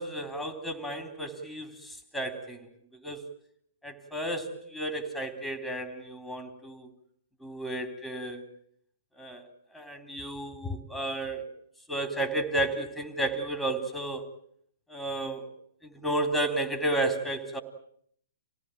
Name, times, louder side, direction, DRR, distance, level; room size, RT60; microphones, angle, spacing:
voice 1, 0.0-2.7 3.0-3.2 3.8-6.9 7.4-8.5 9.2-9.4 9.7-11.4 11.9-14.3 14.9-15.5 15.8-17.6, right 1 dB, ahead, 6 dB, 3.4 m, -32 dB
27.5 x 18.5 x 9.0 m, 0.67 s
hypercardioid pair, 125°, 0 cm